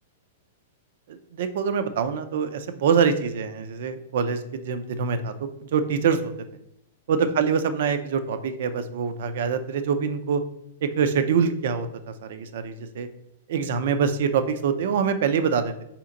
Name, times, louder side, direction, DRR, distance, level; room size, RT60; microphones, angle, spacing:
voice 1, 1.1-5.3 5.6-6.3 7.1-10.4 10.8-13.1 13.5-15.7, right 6 dB, 65° right, 10 dB, 0.5 m, -25 dB
4.2 x 2.9 x 3.7 m, 0.80 s
hypercardioid pair, 125°, 0 cm